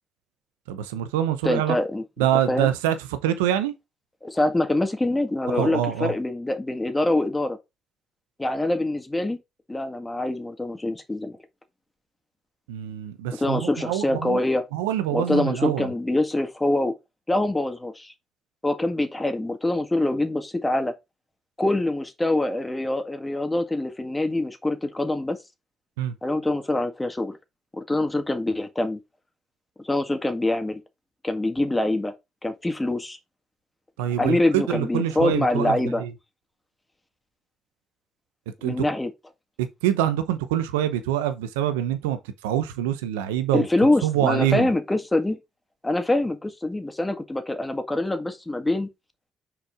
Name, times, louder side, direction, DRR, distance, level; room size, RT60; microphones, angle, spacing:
voice 1, 0.7-1.8 2.2-3.0 3.2-3.7 5.5-6.1 12.7-14.4 14.7-15.9 26.0-26.1 34.0-36.1 38.6-38.9 39.8-43.7 44.0-44.7, right 11 dB, 85° right, 0.8 m, -25 dB
voice 2, 1.4-2.0 2.5-2.7 4.2-7.6 8.4-9.4 9.7-11.4 13.3-14.6 15.1-16.9 17.3-18.1 18.6-20.9 21.6-25.4 26.2-27.4 27.7-29.0 29.8-30.8 31.2-32.1 32.4-33.2 34.2-36.0 38.6-39.1 43.5-45.4 45.8-48.9, left 2 dB, 15° left, 1.7 m, -24 dB
6.1 x 4.8 x 3.6 m
hypercardioid pair, 50°, 0 cm